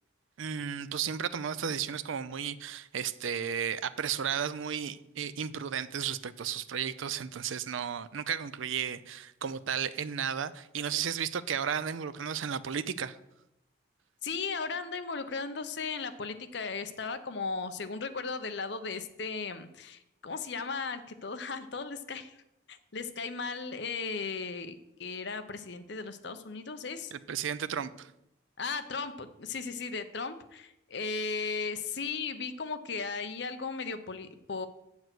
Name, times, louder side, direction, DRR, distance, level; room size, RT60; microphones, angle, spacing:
voice 1, 0.4-13.2 27.1-28.1, right 8 dB, 75° right, 0.5 m, -34 dB
voice 2, 14.2-22.4 22.7-27.1 28.6-34.7, left 4 dB, 55° left, 0.8 m, -36 dB
7.8 x 7.1 x 6.0 m
head